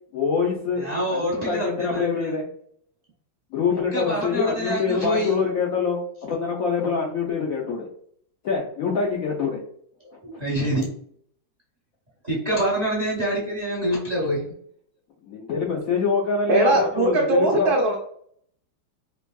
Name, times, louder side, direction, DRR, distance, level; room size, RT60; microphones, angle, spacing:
voice 1, 0.1-0.8 1.1-2.5 3.5-7.9 8.4-9.6 10.3-10.4 15.2-17.7, left 5 dB, 90° left, -2 dB, 0.7 m, -25 dB
voice 2, 0.8-2.2 3.9-5.3 10.2-10.9 12.2-14.4, right 1 dB, 35° right, -4 dB, 0.7 m, -26 dB
voice 3, 16.5-18.0, right 2 dB, 70° right, 0 dB, 0.9 m, -20 dB
4.7 x 2.6 x 2.3 m, 0.63 s
omnidirectional pair, 2.3 m